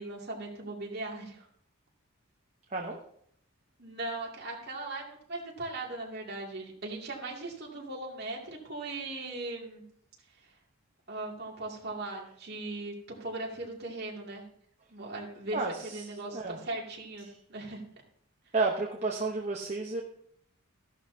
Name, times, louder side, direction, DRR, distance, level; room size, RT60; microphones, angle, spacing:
voice 1, 0.0-1.5 3.8-9.8 10.4-10.5 11.1-14.4 14.9-17.8, right 2 dB, 45° right, -2 dB, 2.5 m, -39 dB
voice 2, 15.5-16.6 17.2-17.4 18.5-20.0, right 3 dB, 30° right, 0 dB, 0.9 m, -32 dB
14.5 x 11.5 x 2.8 m, 0.65 s
head